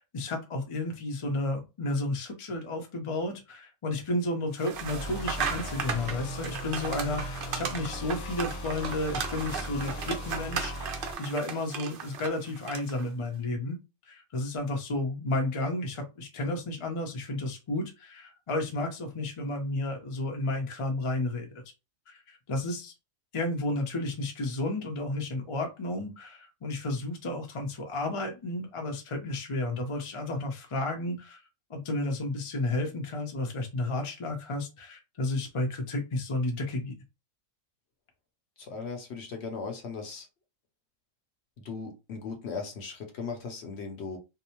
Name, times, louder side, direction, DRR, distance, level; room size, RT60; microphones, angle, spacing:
voice 1, 0.1-13.8 14.1-21.5 22.1-22.9 23.3-31.4 31.7-36.9, left 2 dB, 40° left, 3 dB, 0.5 m, -32 dB
sound 1, 4.6-13.1, right 6 dB, 65° right, 0.5 m, -36 dB
sound 2, 4.7-11.1, equal, 90° left, 1.1 m, -38 dB
voice 2, 38.6-40.3 41.6-44.2, left 4 dB, 60° left, 4 dB, 0.8 m, -38 dB
2.6 x 2.0 x 2.8 m, 0.26 s
omnidirectional pair, 1.4 m